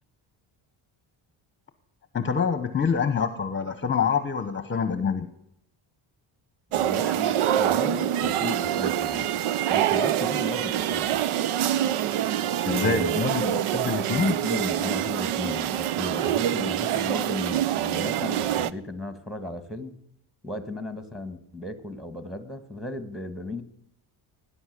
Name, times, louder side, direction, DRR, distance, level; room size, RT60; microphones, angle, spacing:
voice 1, 2.1-5.3 12.6-14.3, left 6 dB, 25° left, 10 dB, 1.0 m, -26 dB
voice 2, 6.7-9.3 9.7-11.3 12.7-13.3 14.1-20.0 20.4-23.6, left 2 dB, ahead, 10 dB, 1.6 m, -35 dB
sound 1, 6.7-18.7, right 11 dB, 90° right, 0.8 m, -25 dB
18.5 x 10.5 x 6.7 m, 0.77 s
cardioid pair, 135°, 49 cm